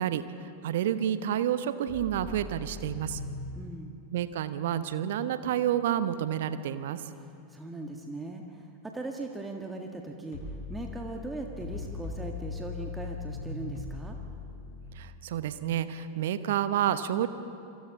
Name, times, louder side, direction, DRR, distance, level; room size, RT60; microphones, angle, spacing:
voice 1, 0.0-3.2 4.1-7.0 14.9-17.3, right 10 dB, 55° right, 12 dB, 1.0 m, -29 dB
sound 1, 1.9-3.5 10.3-14.8, left 3 dB, 50° left, 5.8 m, -39 dB
voice 2, 3.5-4.0 7.5-10.4 10.7-14.2, right 2 dB, 10° right, 2 dB, 1.6 m, -39 dB
28.0 x 25.0 x 3.8 m, 2.6 s
figure-of-eight pair, 90°, 0 cm